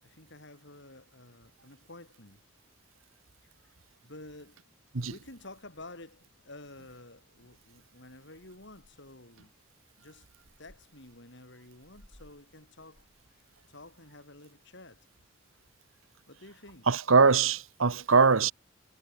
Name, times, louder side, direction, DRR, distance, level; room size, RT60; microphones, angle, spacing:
voice 1, 0.0-2.4 4.0-4.6 5.0-9.5 10.0-10.3 10.6-13.1 13.7-15.1 16.3-16.9, left 2 dB, 60° left, 7.1 m, -50 dB
Purr / Meow, 5.8-14.2, equal, 40° left, 7.6 m, -65 dB
voice 2, 16.9-18.5, right 5 dB, 85° right, 1.1 m, -22 dB
head